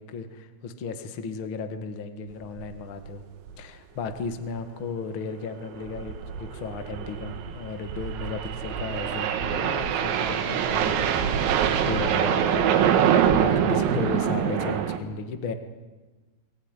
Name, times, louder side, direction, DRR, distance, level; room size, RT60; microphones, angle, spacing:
voice 1, 0.0-3.2 3.6-11.2 11.8-12.9 13.4-15.5, left 4 dB, 80° left, 7 dB, 1.1 m, -35 dB
sound 1, 2.6-2.8 3.1-3.2 3.5-3.6 4.1-4.4 5.7-15.0, right 8 dB, 85° right, 4.0 m, -25 dB
25.0 x 18.5 x 9.8 m, 1.2 s
omnidirectional pair, 5.2 m